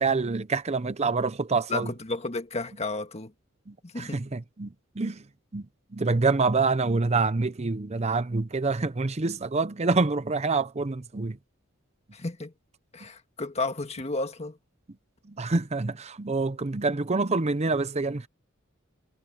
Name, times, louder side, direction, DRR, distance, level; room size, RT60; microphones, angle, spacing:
voice 1, 0.0-1.9 3.7-5.2 5.5-5.6 5.9-11.4 15.3-18.3, right 3 dB, 35° right, 0.7 m, -26 dB
voice 2, 1.7-3.3 3.8-4.2 12.1-12.5 12.9-14.6, left 3 dB, 35° left, 1.6 m, -32 dB
head